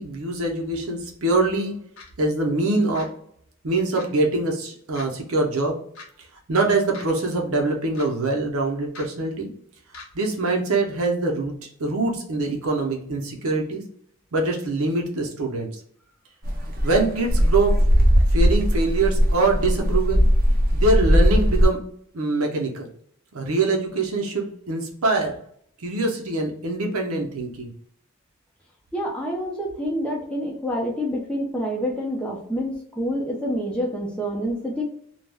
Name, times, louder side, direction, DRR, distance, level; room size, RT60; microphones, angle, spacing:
voice 1, 0.0-1.8 2.2-3.2 3.6-5.8 6.5-9.5 10.1-11.5 11.8-13.8 14.3-15.7 16.8-17.8 18.3-20.3 20.7-21.8 22.1-22.9 23.3-25.4 25.8-27.7, right 2 dB, 80° right, 1 dB, 0.6 m, -24 dB
sound 1, 2.0-2.1 2.9-3.1 4.0-4.1 4.9-5.1 5.9-6.1 6.9-7.1 7.9-8.1 8.9-9.1 9.9-10.1, left 3 dB, 75° left, 0.6 m, -40 dB
sound 2, 16.4-21.7, equal, 40° right, 0.5 m, -19 dB
voice 2, 28.9-34.8, equal, 5° left, -3 dB, 0.5 m, -27 dB
2.3 x 2.1 x 3.3 m, 0.62 s
head